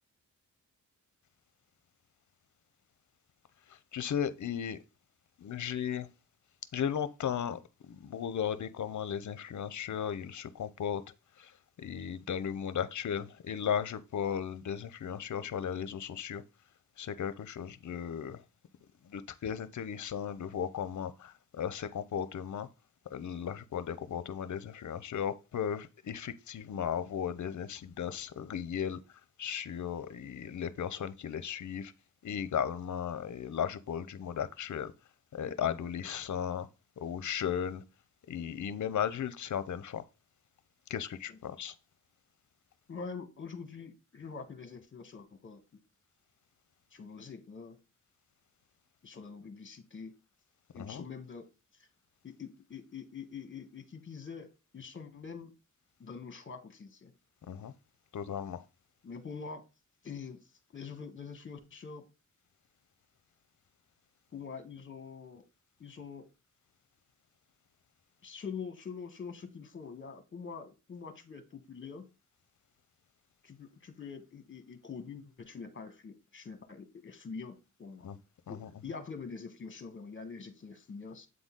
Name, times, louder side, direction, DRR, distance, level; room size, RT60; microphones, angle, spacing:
voice 1, 3.7-4.8 5.4-6.1 6.7-11.0 11.4-11.5 11.8-16.4 17.0-18.4 19.1-22.7 23.1-29.0 29.4-31.9 32.2-34.9 35.3-36.7 37.0-37.8 38.3-40.0 40.9-41.7 50.7-51.0 57.5-57.7 58.1-58.6 78.0-78.2 78.5-78.7, left 8 dB, 60° left, 0.7 m, -36 dB
voice 2, 42.9-45.6 46.9-47.8 49.0-50.1 50.7-51.5 51.8-51.9 52.2-55.5 56.0-57.1 59.0-59.6 60.0-60.4 60.7-62.0 64.3-65.4 65.8-66.3 68.2-72.1 73.4-78.1 78.5-81.3, left 5 dB, 35° left, 1.3 m, -45 dB
7.8 x 3.9 x 3.7 m
cardioid pair, 80°, 34 cm